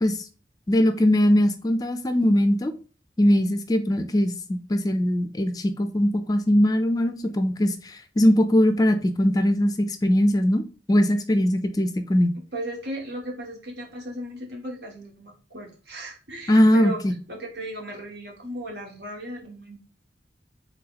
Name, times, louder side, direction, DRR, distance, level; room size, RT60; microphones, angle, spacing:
voice 1, 0.7-2.7 3.2-10.6 10.9-12.3 16.5-17.1, equal, 20° left, 9 dB, 0.3 m, -21 dB
voice 2, 12.5-17.0 17.3-19.8, right 1 dB, 75° right, 1 dB, 1.2 m, -36 dB
3.5 x 2.9 x 3.9 m, 0.37 s
head